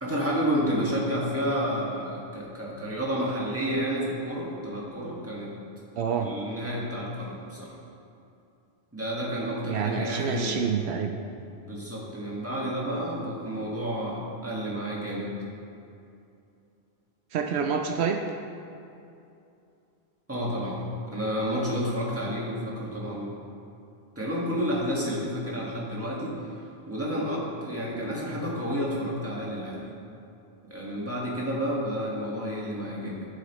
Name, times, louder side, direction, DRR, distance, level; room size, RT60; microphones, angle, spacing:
voice 1, 0.0-5.5 6.2-7.8 8.9-10.6 11.7-15.3 20.3-23.4 24.1-26.4 26.9-29.9 30.7-33.3, equal, 15° right, -5 dB, 1.6 m, -30 dB
voice 2, 6.0-6.3 9.6-11.2 17.3-18.2, right 7 dB, 80° right, 4 dB, 0.8 m, -27 dB
13.0 x 7.1 x 3.0 m, 2.7 s
omnidirectional pair, 1.1 m